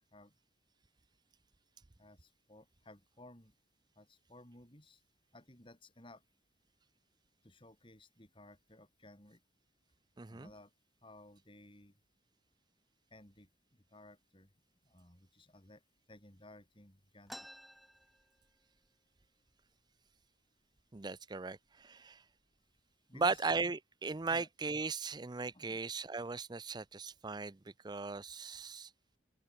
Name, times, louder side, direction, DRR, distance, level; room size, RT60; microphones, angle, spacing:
voice 1, 2.0-3.5 4.0-5.0 5.3-6.2 7.4-9.4 10.3-10.7 11.0-12.0 13.1-13.5 13.9-14.5 14.8-15.8 16.1-17.5 23.1-23.5 24.3-24.5 25.5-25.8, left 1 dB, 30° left, 5.5 m, -57 dB
voice 2, 10.2-10.5 20.9-22.2 23.1-27.6 27.8-28.9, right 4 dB, 25° right, 0.5 m, -37 dB
sound 1, 17.3-18.9 19.2-19.3 19.6-20.2 20.8-20.9 21.7-21.8 22.3-22.8, equal, ahead, 1.9 m, -53 dB
open air
head